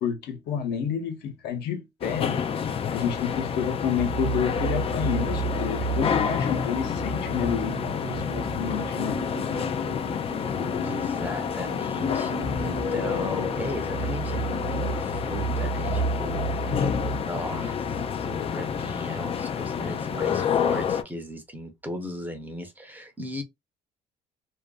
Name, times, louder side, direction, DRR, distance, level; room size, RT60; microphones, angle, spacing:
voice 1, 0.0-2.4 2.9-9.2, left 8 dB, 75° left, 0.9 m, -29 dB
sound 1, 2.0-21.0, left 7 dB, 35° left, 0.4 m, -29 dB
sound 2, 4.0-19.5, right 6 dB, 65° right, 0.7 m, -34 dB
voice 2, 10.8-16.8 17.2-23.4, equal, 10° right, 0.7 m, -37 dB
2.5 x 2.5 x 2.3 m
cardioid pair, 110°, 17 cm